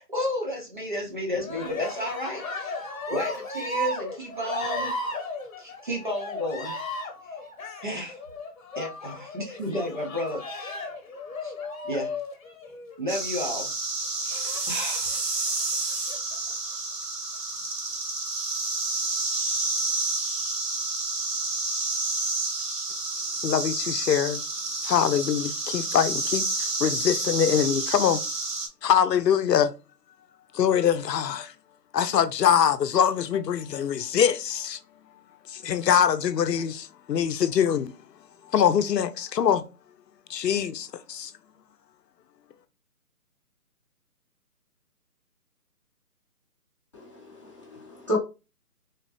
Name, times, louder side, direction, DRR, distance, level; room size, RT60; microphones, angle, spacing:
voice 1, 0.0-2.8 3.1-4.9 5.6-6.8 7.2-7.4 7.8-8.2 8.8-10.8 11.4-11.5 11.8-12.2 13.0-13.7 14.2-15.1, left 1 dB, 30° right, 0.6 m, -32 dB
Cheering, 1.4-13.1 14.3-15.2 15.9-16.6, left 2 dB, 60° left, 0.9 m, -35 dB
sound 1, 13.1-28.7, right 3 dB, 75° right, 1.1 m, -29 dB
voice 2, 23.4-24.4 24.8-28.2 28.8-29.7 30.5-31.5 31.9-34.8 35.5-37.9 38.5-39.6 40.3-41.3, left 8 dB, 85° left, 0.6 m, -23 dB
voice 3, 46.9-48.2, left 1 dB, 20° left, 0.8 m, -32 dB
3.6 x 2.0 x 2.8 m
hypercardioid pair, 165°, 48 cm